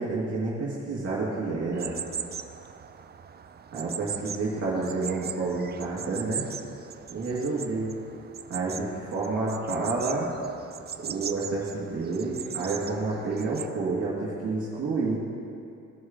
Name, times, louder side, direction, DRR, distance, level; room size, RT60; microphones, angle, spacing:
voice 1, 0.0-1.9 3.7-6.4 7.1-7.9 8.5-10.3 11.0-15.2, right 3 dB, 50° right, -6 dB, 2.0 m, -29 dB
sound 1, 1.7-13.7, right 7 dB, 35° right, 0.5 m, -39 dB
17.0 x 6.3 x 3.7 m, 2.7 s
cardioid pair, 90°, 30 cm